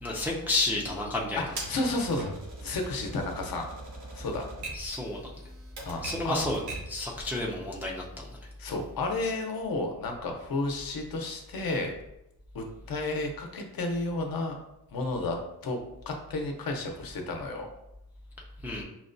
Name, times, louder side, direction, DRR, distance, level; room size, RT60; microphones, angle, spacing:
voice 1, 0.0-1.4 4.7-5.3 6.0-8.4 18.6-18.8, left 2 dB, 5° right, -3 dB, 0.4 m, -31 dB
Typewriter, 1.6-7.0, right 2 dB, 90° right, 1.1 m, -41 dB
voice 2, 1.7-2.3 2.6-3.7 4.1-4.4 5.9-6.4 8.6-11.9 12.5-14.6 14.9-15.4 15.6-17.7, left 2 dB, 65° left, 3 dB, 0.7 m, -32 dB
5.8 x 2.2 x 2.6 m, 0.85 s
wide cardioid pair, 170°, 38 cm